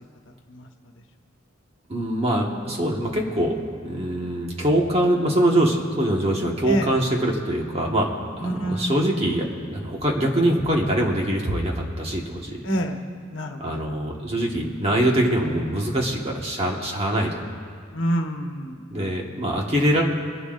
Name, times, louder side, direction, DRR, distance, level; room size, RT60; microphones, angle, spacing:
voice 1, 1.9-3.5 3.8-8.1 8.4-12.6 13.6-17.3 18.9-20.0, right 1 dB, 30° right, -1 dB, 1.6 m, -23 dB
voice 2, 6.6-7.0 8.4-9.0 12.6-13.0 13.3-13.8 17.9-19.1, equal, 75° left, 4 dB, 1.1 m, -27 dB
24.5 x 11.5 x 2.6 m, 2.2 s
head